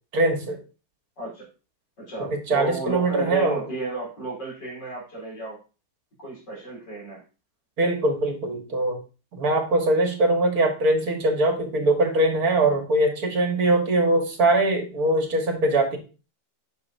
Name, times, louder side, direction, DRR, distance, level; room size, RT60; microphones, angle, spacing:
voice 1, 0.1-0.6 2.2-3.6 7.8-9.0 9.3-16.0, right 2 dB, 55° right, 3 dB, 2.0 m, -22 dB
voice 2, 1.2-1.5 2.0-5.6 6.2-7.2, right 2 dB, 60° left, -3 dB, 3.9 m, -33 dB
9.5 x 6.4 x 2.7 m, 0.34 s
omnidirectional pair, 2.0 m